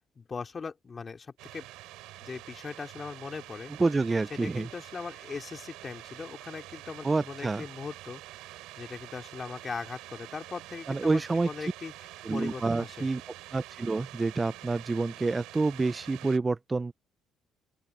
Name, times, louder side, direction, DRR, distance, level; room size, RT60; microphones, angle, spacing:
voice 1, 0.2-1.7 2.2-3.7 4.3-8.2 8.8-13.1, left 5 dB, 35° left, 2.7 m, -40 dB
sound 1, 1.4-16.4, right 17 dB, 85° right, 3.4 m, -47 dB
voice 2, 3.8-4.7 7.0-7.6 10.9-11.5 12.2-13.2 13.5-16.9, right 3 dB, 25° right, 0.4 m, -28 dB
open air
supercardioid pair, 70°, 0 cm